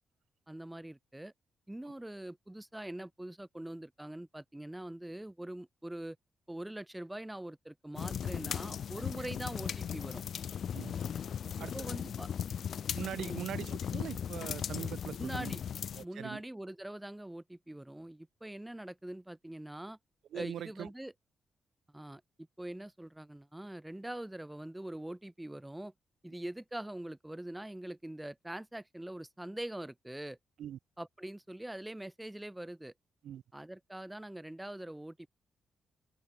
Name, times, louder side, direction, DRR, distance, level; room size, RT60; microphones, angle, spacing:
voice 1, 0.5-1.3 1.7-6.2 6.5-10.2 11.6-12.3 13.1-13.5 15.2-15.6 16.0-20.0 20.3-21.1 21.9-22.2 22.6-25.9 26.2-30.4 31.0-32.9 33.5-35.3, right 1 dB, 5° right, 1.0 m, -43 dB
sound 1, 8.0-16.0, left 8 dB, 55° left, 0.4 m, -37 dB
voice 2, 12.9-15.5 16.0-16.4 20.3-20.9 30.6-30.8 33.2-33.4, right 10 dB, 75° right, 0.5 m, -42 dB
cardioid pair, 140°, 0 cm